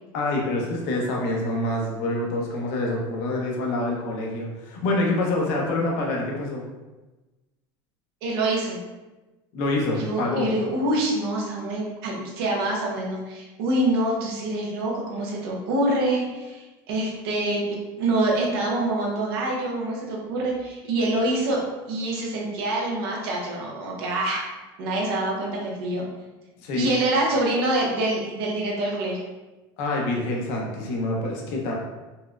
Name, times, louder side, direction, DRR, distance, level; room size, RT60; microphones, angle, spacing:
voice 1, 0.1-6.6 9.5-10.5 26.6-26.9 29.8-31.7, left 2 dB, 70° left, -1 dB, 0.8 m, -26 dB
voice 2, 8.2-8.8 9.9-21.6 21.9-24.4 24.8-26.0 26.7-29.2, right 1 dB, 80° right, -2 dB, 0.8 m, -25 dB
4.2 x 2.1 x 2.4 m, 1.1 s
supercardioid pair, 115°, 12 cm